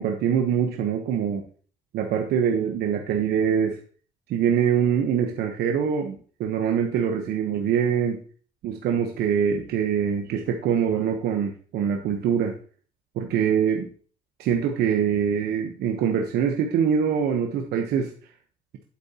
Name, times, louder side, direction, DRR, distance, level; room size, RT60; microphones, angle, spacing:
voice 1, 0.0-1.4 1.9-3.8 4.3-8.2 8.6-12.5 13.2-13.9 14.4-18.1, right 8 dB, 75° right, 3 dB, 1.0 m, -24 dB
8.5 x 7.9 x 2.9 m, 0.43 s
cardioid pair, 110°, 17 cm